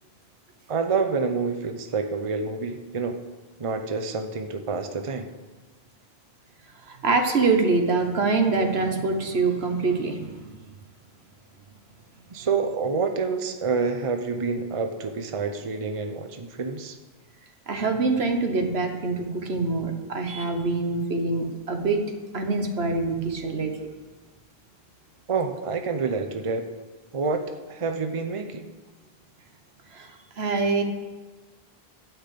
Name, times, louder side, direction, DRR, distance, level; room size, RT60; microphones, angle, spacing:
voice 1, 0.7-3.2 3.6-5.3 12.3-17.0 25.3-26.6 27.1-27.4 27.7-28.6, right 4 dB, 35° right, 6 dB, 0.8 m, -27 dB
voice 2, 6.9-10.4 17.7-22.0 22.3-23.7 29.9-30.8, right 3 dB, 80° right, 5 dB, 1.5 m, -25 dB
12.0 x 5.8 x 8.5 m, 1.2 s
omnidirectional pair, 1.1 m